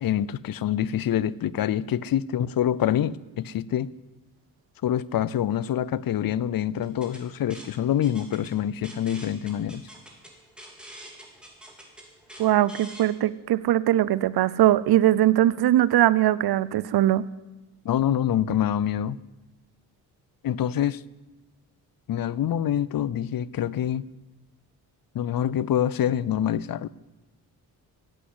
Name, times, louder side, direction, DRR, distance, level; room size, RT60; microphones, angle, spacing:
voice 1, 0.0-3.9 4.8-9.8 17.8-19.2 20.4-21.0 22.1-24.0 25.1-26.9, left 10 dB, 60° left, 20 dB, 0.6 m, -26 dB
sound 1, 6.8-13.1, right 1 dB, ahead, 3.9 m, -46 dB
voice 2, 12.4-17.2, right 13 dB, 70° right, 19 dB, 0.6 m, -21 dB
15.5 x 8.5 x 7.9 m, 1.1 s
cardioid pair, 60°, 40 cm